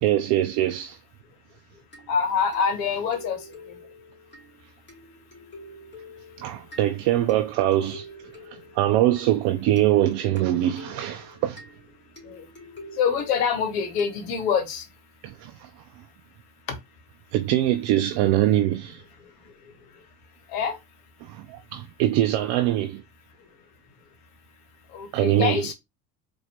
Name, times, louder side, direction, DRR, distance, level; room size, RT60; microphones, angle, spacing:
voice 1, 0.0-1.0 6.4-8.1 8.5-11.6 15.2-15.7 17.3-19.0 21.2-23.0 25.1-25.6, right 13 dB, 60° right, 0.5 m, -23 dB
sound 1, 1.9-14.7, left 1 dB, 25° left, 2.1 m, -47 dB
voice 2, 2.1-3.4 12.3-12.4 13.0-14.8 20.5-20.8 24.9-25.7, left 6 dB, 75° left, 1.1 m, -25 dB
4.2 x 2.6 x 2.8 m
hypercardioid pair, 65°, 47 cm